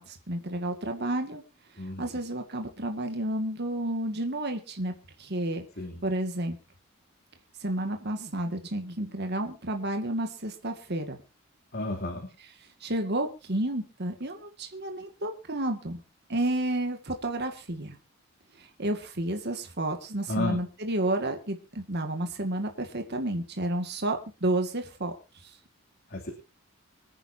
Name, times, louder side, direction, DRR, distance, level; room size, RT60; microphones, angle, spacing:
voice 1, 0.0-1.4 2.0-4.9 5.2-5.7 6.0-6.6 7.6-11.2 12.8-16.0 16.3-18.0 18.6-25.1 25.4-25.5, right 1 dB, 55° right, 4 dB, 2.0 m, -31 dB
voice 2, 11.7-12.3 20.3-20.6 26.1-26.3, left 2 dB, 50° left, 1 dB, 3.0 m, -32 dB
25.5 x 10.0 x 2.8 m, 0.30 s
head